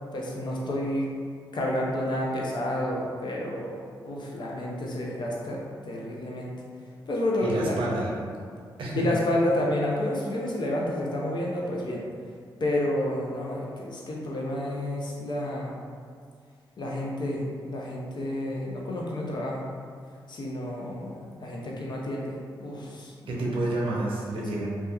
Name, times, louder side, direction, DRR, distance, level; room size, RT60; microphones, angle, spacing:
voice 1, 0.1-1.1 1.5-5.6 5.9-6.5 7.1-7.8 9.0-12.0 12.6-15.8 16.8-19.6 20.3-21.2 21.4-23.1, left 1 dB, 55° left, -3 dB, 0.6 m, -30 dB
voice 2, 7.4-8.1 8.8-9.1 23.3-24.8, right 1 dB, 70° right, -3 dB, 0.6 m, -29 dB
2.7 x 2.3 x 2.3 m, 2.1 s
supercardioid pair, 45°, 9 cm